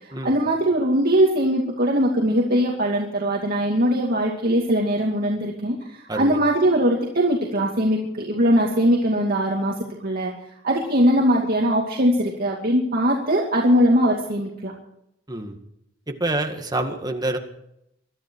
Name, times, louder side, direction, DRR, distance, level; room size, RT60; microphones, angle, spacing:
voice 1, 0.0-9.7 10.0-10.3 10.6-14.7, equal, 50° right, -1 dB, 2.4 m, -21 dB
voice 2, 6.1-6.4 15.3-15.6 16.1-17.4, right 2 dB, 20° right, 5 dB, 1.9 m, -27 dB
22.5 x 13.0 x 4.7 m, 0.78 s
head